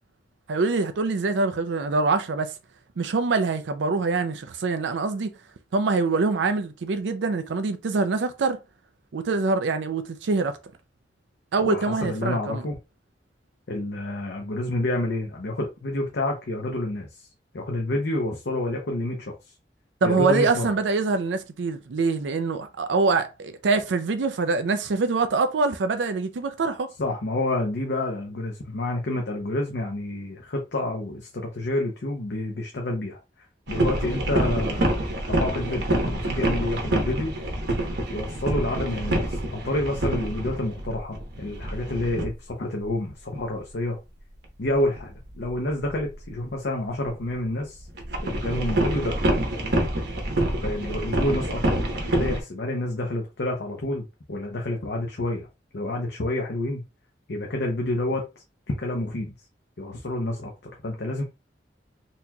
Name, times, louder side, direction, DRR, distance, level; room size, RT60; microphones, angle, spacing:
voice 1, 0.5-2.5 3.0-5.3 5.7-8.6 9.1-10.6 11.5-12.6 20.0-26.9 50.3-50.4, right 3 dB, 85° right, 0.5 m, -24 dB
voice 2, 11.6-12.8 13.7-17.3 17.5-19.3 20.0-20.7 27.0-33.2 33.7-34.9 35.3-37.3 38.1-44.0 44.6-47.9 48.2-49.2 50.6-55.5 55.7-56.8 57.3-58.2 58.7-59.3 59.8-61.2, left 1 dB, 70° left, 0.7 m, -29 dB
sound 1, 33.7-42.3 43.1-43.2 44.7-45.5 45.9-46.2 47.0-47.1 47.4-47.5 47.8-52.4, right 1 dB, 65° right, 1.0 m, -26 dB
4.0 x 2.9 x 2.3 m
head